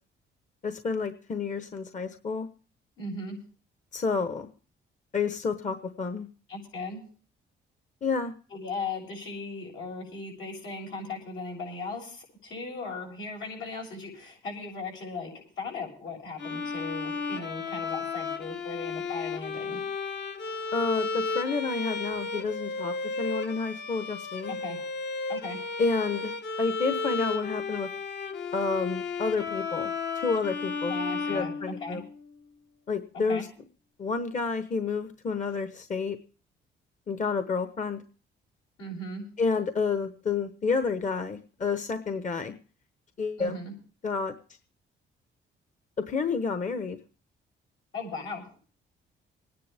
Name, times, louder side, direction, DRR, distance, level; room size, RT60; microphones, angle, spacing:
voice 1, 0.6-2.5 3.9-4.5 5.1-6.3 8.0-8.3 20.7-24.5 25.8-26.3 26.6-27.9 28.5-31.0 31.3-32.0 32.9-33.5 34.0-36.2 37.1-38.0 39.4-42.5 43.2-43.6 44.0-44.3 46.0-47.0, left 4 dB, 40° left, 9 dB, 1.0 m, -30 dB
voice 2, 3.0-3.4 6.5-7.0 8.5-19.8 24.5-24.8 25.3-25.6 30.9-31.5 31.8-32.0 33.1-33.5 38.8-39.2 43.4-43.7 47.9-48.6, left 3 dB, 85° left, 0 dB, 7.5 m, -37 dB
Bowed string instrument, 16.4-32.3, left 4 dB, 60° left, 1.4 m, -33 dB
26.0 x 10.0 x 3.4 m, 0.39 s
cardioid pair, 90°, 20 cm